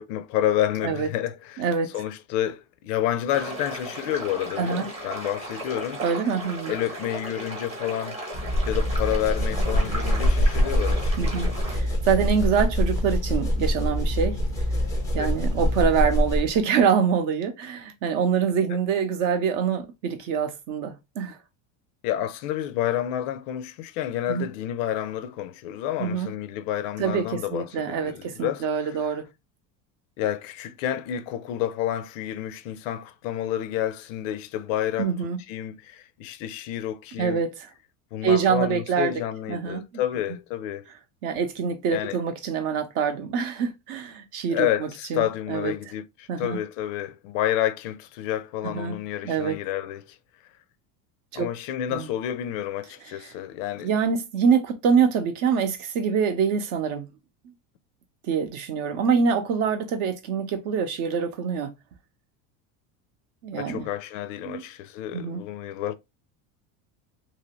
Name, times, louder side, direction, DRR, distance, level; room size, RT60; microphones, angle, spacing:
voice 1, 0.0-1.7 1.9-6.0 6.7-8.2 8.7-11.6 15.2-15.3 22.0-28.7 30.2-35.1 35.5-37.4 38.1-40.8 41.9-42.2 44.5-50.0 51.4-53.9 63.6-65.9, left 11 dB, 65° left, 0.5 m, -29 dB
voice 2, 1.6-1.9 4.6-4.9 6.0-6.7 11.2-14.4 15.1-21.4 24.3-24.5 26.0-26.3 27.0-29.2 35.0-35.4 37.2-37.5 38.2-39.1 39.5-39.8 41.2-45.7 46.3-46.6 48.6-49.0 49.2-49.6 51.3-51.5 51.9-52.1 53.0-53.3 53.8-57.1 57.4-57.5 58.3-61.7 63.4-63.9 64.4-64.6 65.1-65.4, right 6 dB, 50° right, 0.7 m, -25 dB
sound 1, 3.3-11.8, right 1 dB, 15° right, 0.8 m, -36 dB
sound 2, 8.3-16.6, equal, 10° left, 0.4 m, -24 dB
2.9 x 2.6 x 2.9 m
cardioid pair, 170°, 41 cm